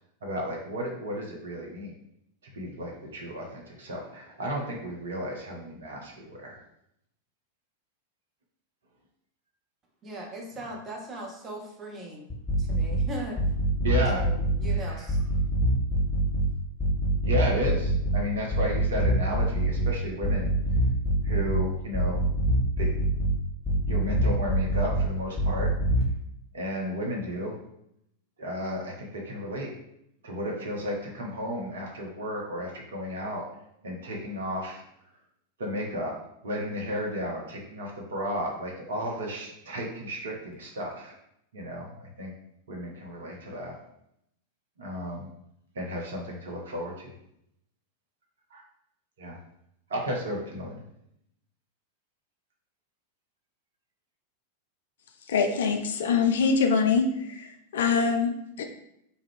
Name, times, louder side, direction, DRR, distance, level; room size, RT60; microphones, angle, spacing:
voice 1, 0.2-1.9 2.5-6.6 13.8-14.3 14.7-15.1 17.2-20.5 21.2-22.2 22.8-22.9 23.8-25.7 26.5-27.5 28.4-29.7 30.2-33.4 33.8-34.8 35.6-36.2 36.4-41.1 41.5-42.3 42.7-43.8 44.8-45.3 45.7-47.1 48.5-48.6 49.2-49.4 49.9-50.8, equal, 65° right, -1 dB, 0.7 m, -33 dB
voice 2, 10.0-12.3 12.6-13.4 14.2-15.2, right 2 dB, 25° right, -1 dB, 0.6 m, -39 dB
sound 1, 12.3-13.0 13.4-14.7 15.1-16.5 16.8-18.2 18.5-19.9 20.2-21.6 21.9-23.3 23.6-25.0 25.4-26.0, right 1 dB, ahead, 0.9 m, -24 dB
voice 3, 55.3-58.6, left 5 dB, 60° left, 5 dB, 0.3 m, -24 dB
2.3 x 2.0 x 3.4 m, 0.76 s
figure-of-eight pair, 90°, 0 cm